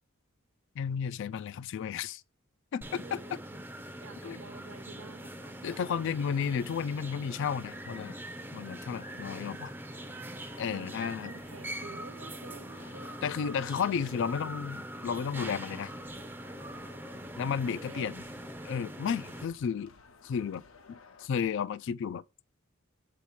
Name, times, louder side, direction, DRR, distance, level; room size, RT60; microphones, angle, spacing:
voice 1, 0.8-2.2 2.7-3.2 4.2-4.4 5.6-8.1 8.5-9.7 10.6-11.3 13.2-15.9 17.4-18.2 18.7-19.9 20.2-20.6 20.9-22.2, left 7 dB, 60° left, 0.3 m, -33 dB
sound 1, 2.8-19.4, right 1 dB, 10° right, 0.5 m, -43 dB
voice 2, 3.0-3.4 4.0-6.1 10.6-13.5 17.7-18.3, right 4 dB, 70° right, 0.8 m, -51 dB
sound 2, 7.6-21.3, left 4 dB, 80° left, 0.8 m, -57 dB
7.3 x 2.9 x 5.7 m
head